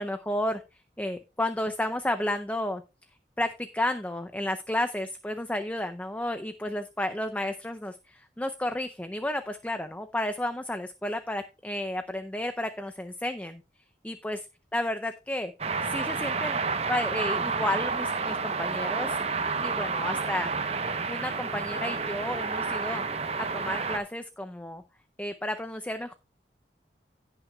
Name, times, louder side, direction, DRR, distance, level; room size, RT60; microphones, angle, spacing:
voice 1, 0.0-2.8 3.4-13.6 14.0-14.5 14.7-15.5 15.8-16.6 16.9-19.2 19.6-20.5 21.1-23.0 23.4-24.8 25.2-26.1, left 1 dB, 10° left, 8 dB, 0.5 m, -32 dB
sound 1, 15.6-24.0, right 4 dB, 35° right, 0.8 m, -30 dB
17.0 x 6.0 x 2.3 m, 0.30 s
head